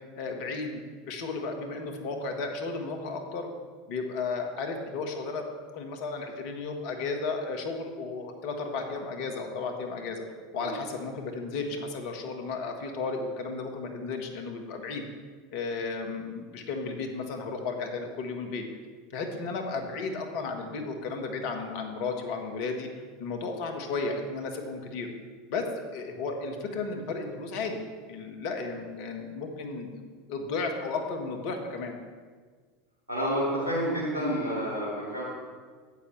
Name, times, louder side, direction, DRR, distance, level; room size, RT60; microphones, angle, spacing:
voice 1, 0.2-0.8 1.1-3.5 3.9-5.5 5.7-10.2 10.5-15.0 15.5-18.6 19.1-25.1 25.5-25.6 25.9-27.8 28.1-31.9, left 4 dB, 55° left, 4 dB, 1.5 m, -34 dB
voice 2, 33.1-35.2, equal, 80° right, -7 dB, 2.5 m, -29 dB
12.0 x 8.5 x 3.3 m, 1.5 s
figure-of-eight pair, 80°, 0 cm